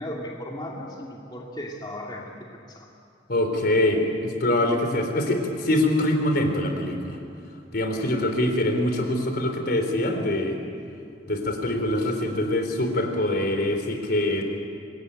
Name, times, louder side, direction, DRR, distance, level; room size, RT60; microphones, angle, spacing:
voice 1, 0.0-2.4 2.7-2.9, left 1 dB, 25° left, -2 dB, 2.2 m, -36 dB
voice 2, 3.3-7.2 7.7-10.6 11.3-14.4, left 1 dB, 60° left, 5 dB, 3.7 m, -24 dB
25.5 x 21.5 x 9.0 m, 2.4 s
head